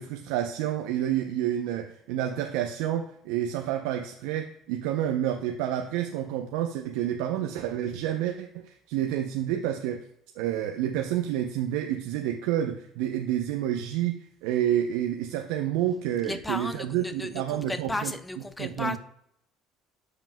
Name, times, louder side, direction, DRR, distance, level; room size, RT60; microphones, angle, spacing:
voice 1, 0.0-10.0 10.4-18.1 18.6-19.0, right 11 dB, 80° right, 4 dB, 0.6 m, -29 dB
voice 2, 16.2-19.0, left 2 dB, 15° left, 8 dB, 0.9 m, -34 dB
14.0 x 5.0 x 2.2 m, 0.72 s
hypercardioid pair, 70°, 0 cm